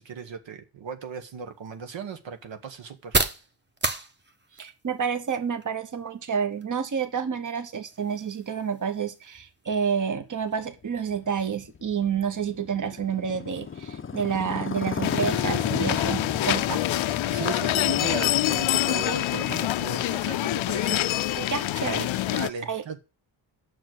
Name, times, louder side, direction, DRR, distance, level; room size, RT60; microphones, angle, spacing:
voice 1, 0.0-3.2 17.3-21.1 22.3-23.0, right 6 dB, 75° right, 7 dB, 1.2 m, -37 dB
sound 1, 1.0-18.6, right 2 dB, 25° right, 1.1 m, -38 dB
voice 2, 4.6-16.8 21.4-22.1 22.7-22.8, right 7 dB, 40° right, 9 dB, 1.2 m, -29 dB
Motorcycle, 10.8-20.8, left 6 dB, 30° left, 0.5 m, -35 dB
sound 2, 15.0-22.5, left 14 dB, 85° left, 0.6 m, -26 dB
7.0 x 6.5 x 7.7 m, 0.31 s
cardioid pair, 95°, 46 cm